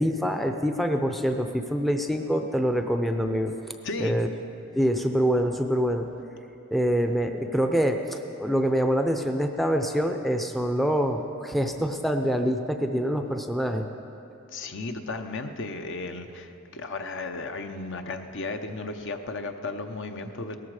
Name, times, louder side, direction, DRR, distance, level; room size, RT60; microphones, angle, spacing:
voice 1, 0.0-3.5 4.0-4.3 4.8-6.1 6.7-13.9, equal, ahead, 5 dB, 0.5 m, -25 dB
voice 2, 3.8-4.2 14.5-20.6, left 3 dB, 60° left, 6 dB, 0.8 m, -34 dB
18.0 x 14.0 x 4.9 m, 2.8 s
head